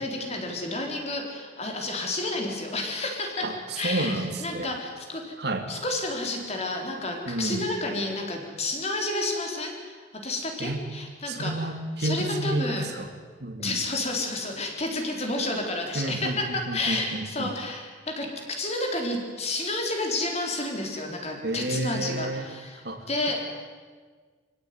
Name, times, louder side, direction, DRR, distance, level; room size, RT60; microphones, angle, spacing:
voice 1, 0.0-3.5 3.8-5.3 5.7-11.6 12.0-12.9 13.6-23.4, left 2 dB, 35° left, 2 dB, 4.1 m, -30 dB
voice 2, 3.4-4.7 5.4-5.7 7.3-7.7 10.6-10.8 11.3-13.1 13.4-13.8 15.9-17.5 21.4-22.5 22.8-23.1, right 2 dB, 60° right, 6 dB, 2.4 m, -30 dB
25.0 x 16.5 x 9.7 m, 1.5 s
head